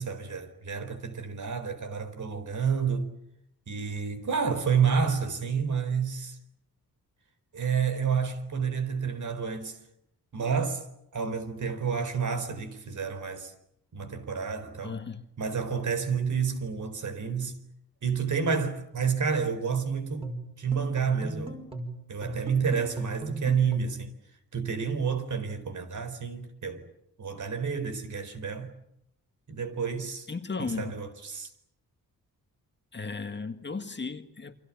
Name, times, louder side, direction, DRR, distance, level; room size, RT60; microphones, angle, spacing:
voice 1, 0.0-3.1 3.7-6.4 7.5-9.8 10.3-10.8 11.1-13.5 13.9-15.0 15.4-17.6 18.0-21.6 22.1-24.1 24.5-26.9 27.2-28.7 29.5-30.3 30.6-31.5, right 6 dB, 55° right, 4.3 m, -29 dB
voice 2, 14.8-15.2 30.3-30.9 32.9-34.5, left 4 dB, 30° left, 1.8 m, -35 dB
sound 1, 20.2-24.1, right 1 dB, 15° right, 5.7 m, -38 dB
29.0 x 26.0 x 7.4 m
wide cardioid pair, 130°, 35 cm